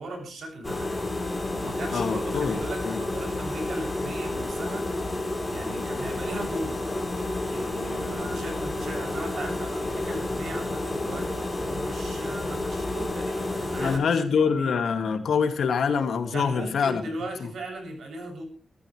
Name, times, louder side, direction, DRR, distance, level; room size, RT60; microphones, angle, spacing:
voice 1, 0.0-6.8 7.5-14.8 16.3-18.5, right 2 dB, 80° right, 7.6 m, -38 dB
sound 1, 0.6-14.0, left 2 dB, 15° left, 3.8 m, -30 dB
voice 2, 1.9-2.6 2.8-3.0 13.8-17.0, left 6 dB, 90° left, 2.5 m, -25 dB
25.0 x 13.5 x 3.4 m
wide cardioid pair, 160°, 0 cm